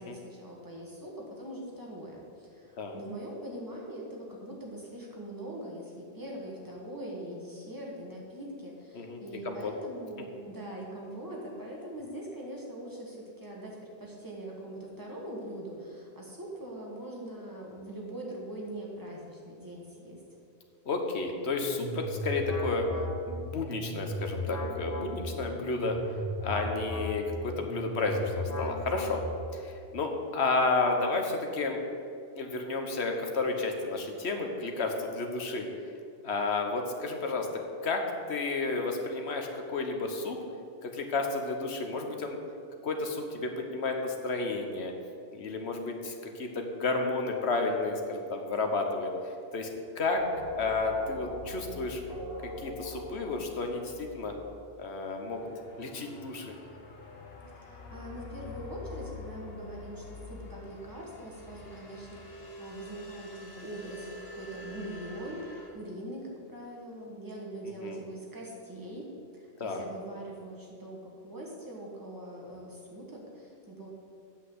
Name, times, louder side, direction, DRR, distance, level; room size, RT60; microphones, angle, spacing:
voice 1, 0.0-20.2 57.5-69.1 69.3-73.9, right 1 dB, 20° right, -3 dB, 1.8 m, -42 dB
voice 2, 20.9-22.8 23.3-26.0 26.4-29.2 29.5-31.8 32.3-35.7 36.2-37.5 37.8-38.0 38.3-40.4 40.8-42.4 42.8-44.9 45.3-49.1 49.5-49.7 50.0-50.2 50.6-52.0 52.4-54.3 54.8-55.5 55.8-56.5 67.6-68.0 69.6-69.9, left 3 dB, 85° left, 4 dB, 1.4 m, -31 dB
sound 1, 21.5-29.6, equal, 40° left, 1.6 m, -36 dB
sound 2, 50.2-54.8, left 1 dB, 65° right, 1.6 m, -42 dB
sound 3, 55.3-65.7, left 2 dB, 70° left, 1.4 m, -46 dB
8.2 x 6.0 x 7.9 m, 2.4 s
omnidirectional pair, 1.1 m